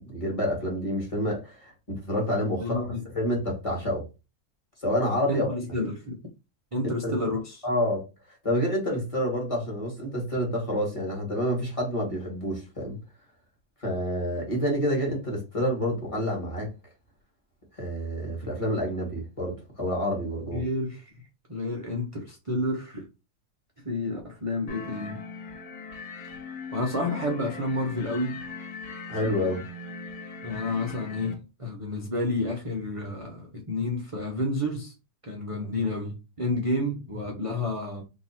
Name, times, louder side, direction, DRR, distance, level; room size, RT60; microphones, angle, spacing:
voice 1, 0.0-4.1 4.8-5.5 7.0-7.2 7.6-8.0 8.4-13.0 13.8-16.7 17.8-20.7 29.1-29.6, equal, 25° left, 1.3 m, -28 dB
voice 2, 2.6-3.0 5.3-6.2 6.7-7.7 20.5-21.1 21.5-23.0 23.8-25.2 26.7-28.4 30.4-34.9 35.2-38.0, left 1 dB, 40° right, 0.5 m, -30 dB
sound 1, 24.7-31.3, left 4 dB, 75° left, 1.5 m, -40 dB
2.9 x 2.7 x 4.2 m
omnidirectional pair, 1.6 m